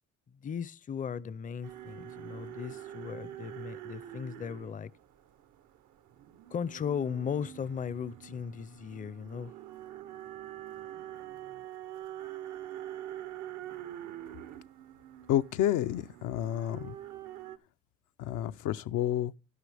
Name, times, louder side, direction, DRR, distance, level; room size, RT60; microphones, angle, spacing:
voice 1, 0.3-4.9 6.5-9.5, left 7 dB, 25° left, 0.4 m, -37 dB
sound 1, 1.6-17.6, right 12 dB, 80° right, 0.9 m, -45 dB
voice 2, 15.3-17.0 18.2-19.3, left 12 dB, 85° left, 0.5 m, -30 dB
11.5 x 11.0 x 3.4 m
cardioid pair, 90°, 30 cm